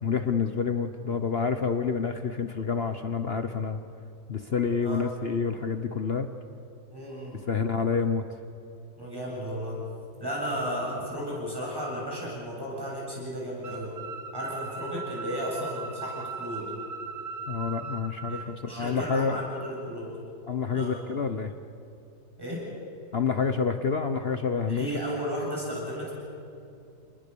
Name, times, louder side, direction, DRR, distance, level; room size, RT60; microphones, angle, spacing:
voice 1, 0.0-3.8 4.3-6.3 7.5-8.2 17.5-19.4 20.5-21.5 23.1-24.9, left 5 dB, 45° left, 8 dB, 0.9 m, -28 dB
voice 2, 6.9-7.4 9.0-9.8 10.2-13.9 14.3-16.6 18.3-20.1 20.7-21.0 22.4-22.6 24.7-26.1, equal, 10° right, -4 dB, 7.8 m, -34 dB
sound 1, 13.6-18.5, right 5 dB, 90° right, 3.0 m, -38 dB
29.5 x 20.5 x 6.9 m, 2.6 s
omnidirectional pair, 1.9 m